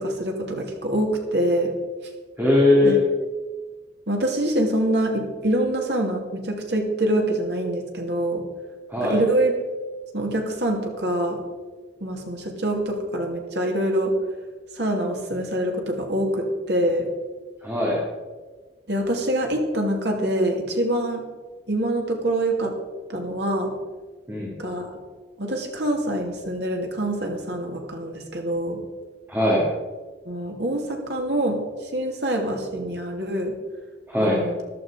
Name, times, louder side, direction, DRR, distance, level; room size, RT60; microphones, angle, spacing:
voice 1, 0.0-1.7 2.8-3.0 4.1-8.4 9.0-9.5 10.1-11.4 12.0-14.1 14.7-17.0 18.9-21.2 21.7-22.7 23.1-23.7 24.6-24.9 25.4-28.8 30.2-31.6 31.9-33.5 34.2-34.6, right 1 dB, 65° right, 2 dB, 2.7 m, -25 dB
voice 2, 2.4-2.9 8.9-9.2 17.6-18.0 24.3-24.5 29.3-29.6 34.1-34.4, left 1 dB, 10° right, -5 dB, 2.8 m, -20 dB
13.5 x 12.0 x 5.1 m, 1.3 s
head